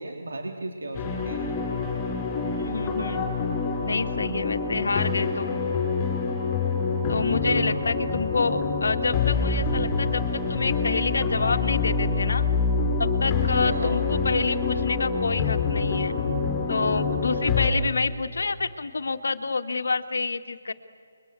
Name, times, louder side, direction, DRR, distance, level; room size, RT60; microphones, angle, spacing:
voice 1, 0.0-1.5 7.4-7.9 13.6-14.0, right 2 dB, 80° right, 3 dB, 3.2 m, -34 dB
sound 1, 0.9-17.7, left 4 dB, 20° left, 4.7 m, -26 dB
voice 2, 2.6-3.3 3.8-5.6 7.1-12.4 13.0-16.1 16.7-20.7, left 4 dB, 75° left, 8 dB, 1.8 m, -28 dB
29.5 x 22.5 x 8.3 m, 2.3 s
figure-of-eight pair, 160°, 0 cm